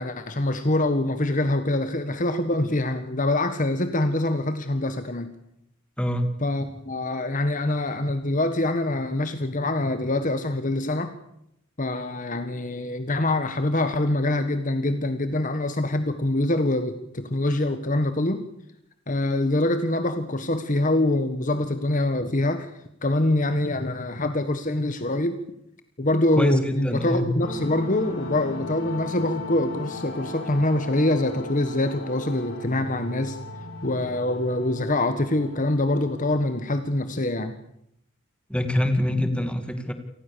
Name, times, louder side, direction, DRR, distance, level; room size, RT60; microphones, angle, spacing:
voice 1, 0.0-5.3 6.4-11.1 11.8-18.4 19.1-22.7 23.0-25.4 26.0-33.4 33.8-37.5, left 1 dB, 40° left, 9 dB, 1.6 m, -25 dB
voice 2, 6.0-6.3 26.4-27.3 38.5-39.9, equal, 5° left, 7 dB, 2.2 m, -24 dB
sound 1, 27.4-37.3, left 2 dB, 65° left, 6.0 m, -37 dB
28.5 x 19.5 x 7.0 m, 0.78 s
head